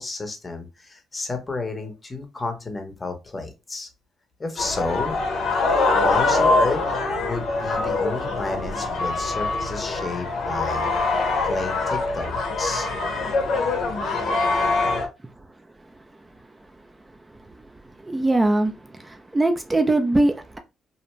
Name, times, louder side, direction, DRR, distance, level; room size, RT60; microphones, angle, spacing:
voice 1, 0.0-3.9 4.4-5.2 5.9-6.8 7.2-10.9 11.4-13.0, left 3 dB, 25° left, 0.7 m, -31 dB
sound 1, 4.6-15.1, left 3 dB, 70° left, 0.7 m, -23 dB
voice 2, 18.1-18.7 19.3-20.6, right 2 dB, 15° right, 0.4 m, -20 dB
2.5 x 2.1 x 2.9 m
cardioid pair, 90°, 0 cm